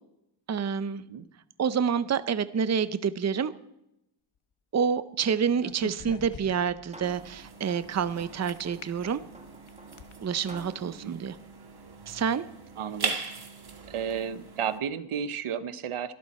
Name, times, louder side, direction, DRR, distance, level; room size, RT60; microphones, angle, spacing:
voice 1, 0.5-1.0 1.6-3.5 4.7-9.2 10.2-11.4 12.1-12.4, right 7 dB, 35° right, 14 dB, 0.6 m, -28 dB
sound 1, 5.5-6.8 8.5-8.8 9.5-10.1, left 7 dB, 75° left, 1.4 m, -42 dB
sound 2, 6.5-12.3, right 1 dB, 15° right, 1.4 m, -51 dB
sound 3, 7.0-14.8, right 4 dB, 50° right, 2.1 m, -40 dB
voice 2, 10.8-11.2 12.8-13.2 13.9-16.1, right 8 dB, 90° right, 14 dB, 1.0 m, -33 dB
23.0 x 13.0 x 4.2 m, 0.85 s
wide cardioid pair, 160°, 49 cm